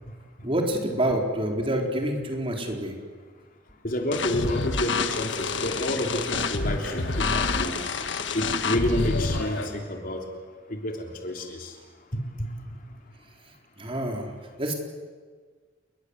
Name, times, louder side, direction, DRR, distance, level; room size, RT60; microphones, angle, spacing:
voice 1, 0.4-3.0 5.7-5.8 13.4-14.3 14.6-14.7, right 1 dB, 30° right, 2 dB, 4.1 m, -27 dB
voice 2, 3.8-7.7 8.3-10.3 10.7-11.7 12.1-12.5, left 1 dB, 45° left, 2 dB, 3.5 m, -29 dB
sound 1, 4.1-9.7, left 2 dB, 85° left, 3.7 m, -37 dB
sound 2, 4.1-9.4, left 4 dB, 70° left, 1.5 m, -28 dB
29.5 x 21.5 x 8.1 m, 1.6 s
head